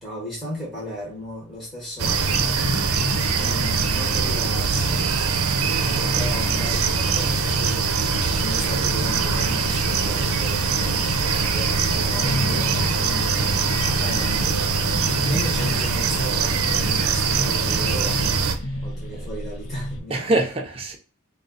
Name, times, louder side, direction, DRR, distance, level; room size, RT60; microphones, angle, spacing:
voice 1, 0.0-2.6 3.4-5.1 5.7-13.0 13.9-14.8 15.3-18.5 18.8-20.3, equal, ahead, 1.2 m, -35 dB
sound 1, 2.0-20.0, left 1 dB, 60° left, 0.6 m, -32 dB
sound 2, 2.0-18.6, right 5 dB, 75° right, 0.6 m, -23 dB
voice 2, 13.4-13.7 19.2-19.3 20.1-21.0, right 2 dB, 25° right, 0.8 m, -28 dB
3.8 x 2.4 x 3.9 m
head